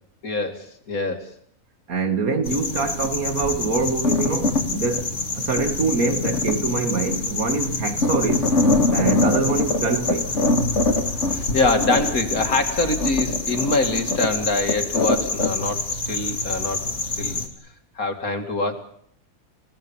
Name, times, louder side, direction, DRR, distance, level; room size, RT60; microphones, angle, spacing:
voice 1, 0.2-1.3 11.3-17.4 18.0-18.7, left 3 dB, 85° left, 2.9 m, -24 dB
voice 2, 1.9-8.5 8.9-10.3, right 4 dB, 90° right, 2.5 m, -25 dB
sound 1, 2.4-17.5, left 2 dB, 55° left, 2.8 m, -24 dB
29.5 x 17.0 x 7.2 m
omnidirectional pair, 1.5 m